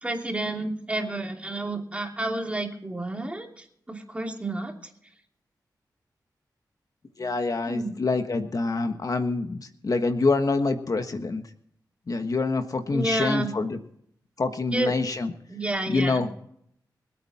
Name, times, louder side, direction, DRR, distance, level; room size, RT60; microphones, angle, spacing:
voice 1, 0.0-4.7 7.7-7.9 12.9-13.5 14.7-14.9 15.5-16.2, right 1 dB, 15° right, 2 dB, 2.9 m, -30 dB
voice 2, 7.2-11.4 12.1-13.8 14.4-15.3 15.9-16.3, left 3 dB, 55° left, 7 dB, 1.4 m, -26 dB
24.5 x 8.9 x 4.3 m, 0.67 s
wide cardioid pair, 80°, 7 cm